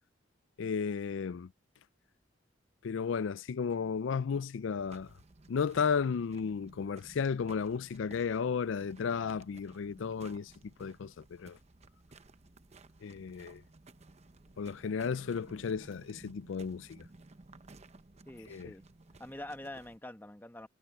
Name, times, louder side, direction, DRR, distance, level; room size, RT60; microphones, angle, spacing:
voice 1, 0.6-1.5 2.8-5.1 5.5-10.5 10.8-11.1 11.4-11.6 13.0-13.6 14.6-17.0 18.5-18.7, left 6 dB, 85° left, 0.4 m, -33 dB
sound 1, 4.8-20.0, right 2 dB, 35° right, 0.9 m, -56 dB
voice 2, 18.3-18.8 19.2-20.7, left 1 dB, 10° left, 1.5 m, -45 dB
head